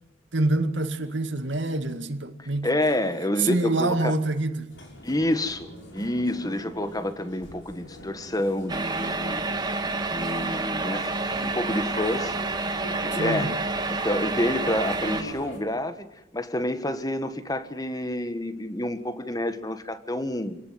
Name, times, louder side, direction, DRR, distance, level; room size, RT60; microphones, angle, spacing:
voice 1, 0.3-2.7 3.4-4.7 13.1-13.6, right 2 dB, 70° right, 2.2 m, -26 dB
voice 2, 2.4-4.1 5.0-9.8 10.1-12.3 12.9-13.5 13.9-16.0 16.3-20.6, left 1 dB, 20° left, 1.6 m, -28 dB
sound 1, 4.7-15.6, equal, 80° left, 6.2 m, -42 dB
sound 2, 8.7-15.2, right 3 dB, 20° right, 1.8 m, -29 dB
28.0 x 18.5 x 9.4 m
head